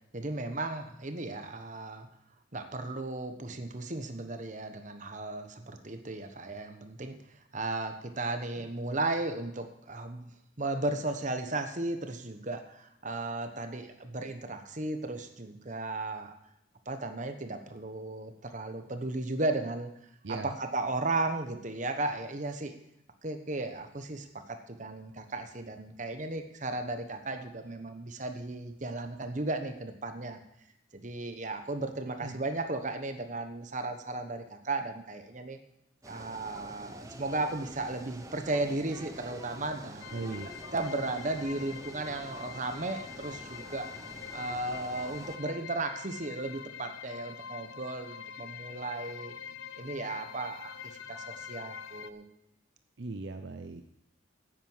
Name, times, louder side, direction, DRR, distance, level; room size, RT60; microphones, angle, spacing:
voice 1, 0.1-2.1 2.5-7.2 7.5-10.3 10.6-16.3 16.9-19.9 20.4-22.7 23.2-30.4 30.9-35.6 36.1-40.1 40.7-43.9 44.3-49.3 49.8-52.3, right 2 dB, 40° right, 7 dB, 1.2 m, -35 dB
voice 2, 20.2-20.6 32.1-32.4 40.1-40.5 53.0-53.8, right 3 dB, 60° right, 7 dB, 0.7 m, -38 dB
sound 1, 36.0-45.4, right 1 dB, 15° right, 0.9 m, -47 dB
sound 2, 40.0-52.1, left 7 dB, 85° left, 0.7 m, -45 dB
9.6 x 9.1 x 7.3 m, 0.80 s
head